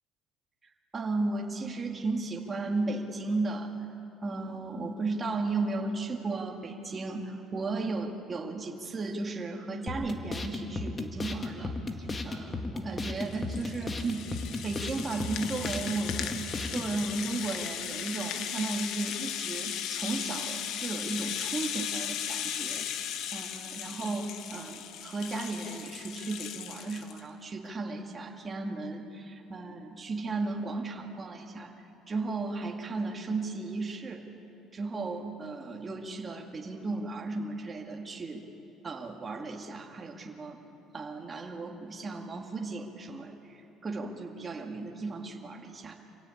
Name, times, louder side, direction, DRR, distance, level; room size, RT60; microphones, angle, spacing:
voice 1, 0.9-3.7 4.2-22.9 23.3-31.7 32.1-34.2 34.7-38.4 38.8-40.6 40.9-46.0, right 3 dB, 25° right, 1 dB, 2.3 m, -35 dB
sound 1, 9.9-16.9, left 3 dB, 25° left, 1.9 m, -35 dB
Rattle (instrument), 13.0-27.2, left 9 dB, 70° left, 1.3 m, -37 dB
26.0 x 17.0 x 8.6 m, 2.8 s
cardioid pair, 115°, 0 cm